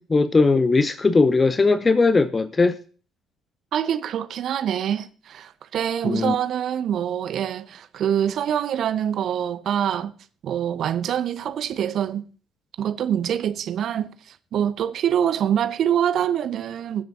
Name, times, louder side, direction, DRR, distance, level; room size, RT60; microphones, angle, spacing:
voice 1, 0.1-2.8 6.0-6.3, left 3 dB, 25° left, 0.6 m, -19 dB
voice 2, 3.7-10.1 10.4-12.2 12.8-17.0, right 9 dB, 50° right, 0.7 m, -25 dB
21.5 x 7.4 x 2.8 m
figure-of-eight pair, 50°, 0 cm